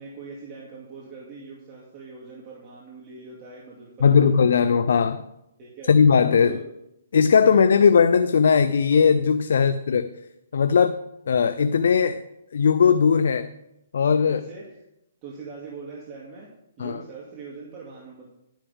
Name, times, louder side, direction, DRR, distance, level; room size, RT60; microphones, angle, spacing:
voice 1, 0.0-4.5 5.6-5.9 6.2-6.6 7.5-7.7 8.0-8.1 9.5-9.7 10.7-10.9 14.2-14.7 15.2-16.5 16.8-18.3, right 4 dB, 30° right, -5 dB, 2.6 m, -42 dB
voice 2, 4.0-5.2 5.9-6.6 7.1-10.1 10.5-11.0 11.3-12.2 12.5-13.5 13.9-14.4 16.8-17.0, left 6 dB, 70° left, 12 dB, 0.6 m, -18 dB
12.0 x 10.0 x 3.6 m, 0.83 s
hypercardioid pair, 150°, 0 cm